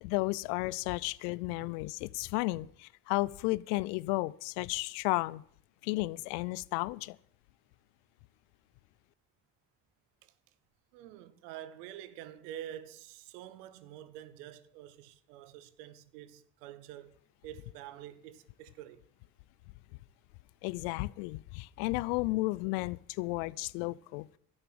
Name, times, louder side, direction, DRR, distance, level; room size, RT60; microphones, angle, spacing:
voice 1, 0.0-5.4 5.8-7.2 20.6-24.3, left 22 dB, 85° left, 0.5 m, -33 dB
voice 2, 10.9-19.0, right 11 dB, 90° right, 0.9 m, -47 dB
12.0 x 9.5 x 7.7 m
hypercardioid pair, 50°, 46 cm